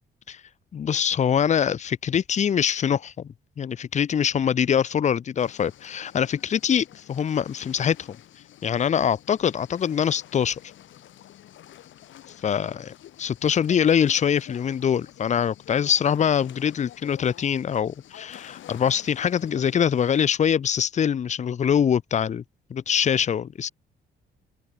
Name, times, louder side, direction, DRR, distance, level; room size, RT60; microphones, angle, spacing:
voice 1, 0.7-8.2 8.6-10.6 12.4-12.8 13.2-22.4 22.7-23.7, left 8 dB, 35° left, 0.5 m, -24 dB
sound 1, 5.4-20.3, left 12 dB, 75° left, 1.7 m, -49 dB
open air
cardioid pair, 90°, 20 cm